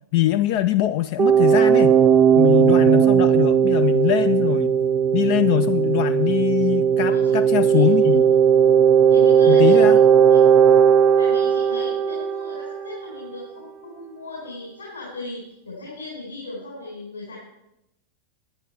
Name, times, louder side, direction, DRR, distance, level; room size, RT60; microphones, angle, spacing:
voice 1, 0.1-2.0 2.4-4.7 5.1-8.2 9.5-10.0, left 14 dB, 45° left, 10 dB, 0.3 m, -22 dB
sound 1, 1.2-12.8, right 8 dB, 30° right, 0.6 m, -17 dB
voice 2, 7.1-8.3 9.1-10.0 10.3-10.4 11.2-17.4, left 2 dB, 75° left, -6 dB, 4.6 m, -37 dB
9.9 x 9.7 x 4.6 m, 0.83 s
figure-of-eight pair, 90°, 0 cm